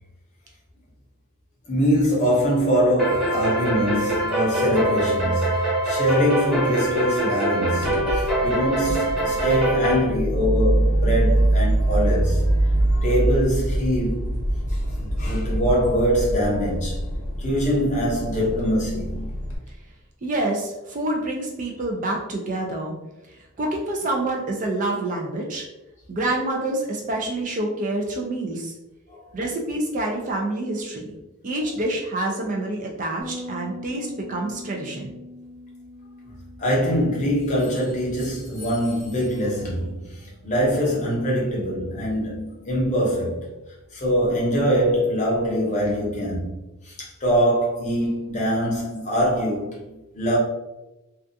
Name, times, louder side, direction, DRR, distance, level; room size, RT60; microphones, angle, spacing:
voice 1, 1.7-12.4 13.0-14.3 14.7-17.0 17.4-19.2 29.1-29.3 36.6-43.5 43.9-46.6 46.8-50.4, equal, 35° left, 0.8 m, -23 dB
sound 1, 3.0-10.0, right 1 dB, 5° right, 0.8 m, -24 dB
sound 2, 7.8-19.6, right 1 dB, 80° left, 0.7 m, -24 dB
voice 2, 20.2-23.0 23.6-25.6 26.1-28.7 29.3-31.1 31.4-35.1, right 2 dB, 35° right, 0.4 m, -27 dB
Bass guitar, 33.2-39.4, left 1 dB, 65° right, 0.7 m, -42 dB
2.4 x 2.3 x 2.6 m
head